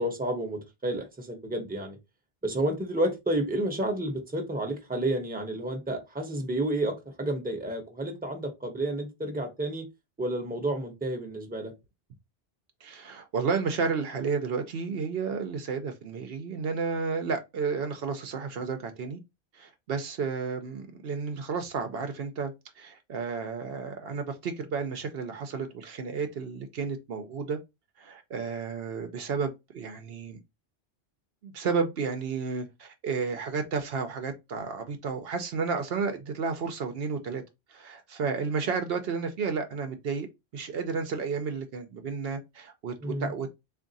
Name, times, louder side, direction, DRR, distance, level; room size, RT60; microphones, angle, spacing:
voice 1, 0.0-2.0 2.4-9.8 10.2-11.7 43.0-43.3, right 1 dB, 10° right, 0.8 m, -30 dB
voice 2, 12.8-19.2 19.5-27.6 28.0-30.4 31.4-37.4 37.7-40.3 40.5-43.5, right 5 dB, 70° right, 0.9 m, -32 dB
3.6 x 2.5 x 3.9 m
omnidirectional pair, 1.1 m